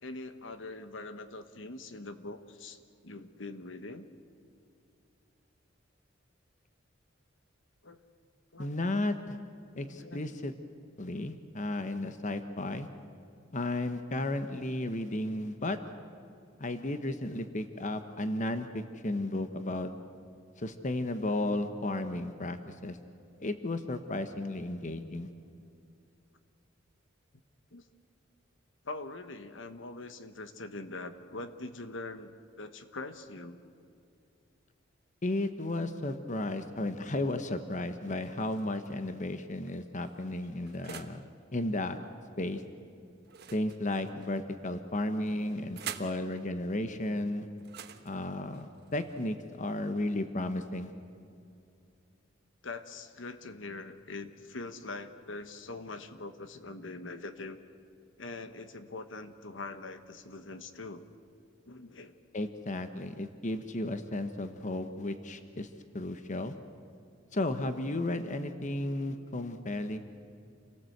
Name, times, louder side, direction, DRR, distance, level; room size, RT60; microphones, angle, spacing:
voice 1, 0.0-4.0 7.8-8.0 8.5-8.7 9.8-10.4 27.7-27.9 28.8-33.6 52.6-57.6 58.2-61.0 61.6-62.2, left 3 dB, 70° left, 10 dB, 1.3 m, -43 dB
voice 2, 8.6-9.4 9.8-10.5 11.0-12.9 13.5-15.8 16.6-19.9 20.6-23.0 23.4-25.3 35.2-41.2 41.5-42.0 42.4-42.6 43.5-47.5 48.0-50.9 62.3-65.7 65.9-66.5 67.3-70.0, left 1 dB, 40° left, 9 dB, 1.1 m, -34 dB
sound 1, 38.1-38.9 39.6-41.3 43.2-44.4 45.2-46.2 47.6-49.5, right 8 dB, 55° right, 1.2 m, -47 dB
28.5 x 18.5 x 8.0 m, 2.5 s
head